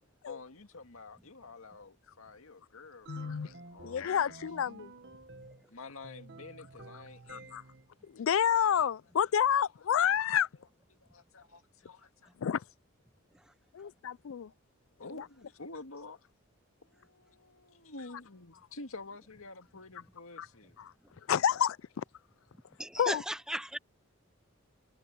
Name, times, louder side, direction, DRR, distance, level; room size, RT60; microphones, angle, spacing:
voice 1, 0.2-4.3 5.7-7.6 8.2-8.3 10.9-12.3 13.8-13.9 15.0-16.3 16.8-20.8, left 3 dB, 90° left, 2.0 m, -49 dB
voice 2, 3.1-3.5 3.8-4.9 7.3-7.6 8.1-10.5 12.4-12.6 13.7-14.5 20.4-20.5 20.8-20.9 21.3-22.0 23.0-23.2, left 8 dB, 70° left, 0.4 m, -29 dB
sound 1, 3.1-5.7 6.0-7.9, right 3 dB, 55° right, 1.2 m, -51 dB
voice 3, 22.8-23.8, right 1 dB, 5° right, 0.6 m, -36 dB
head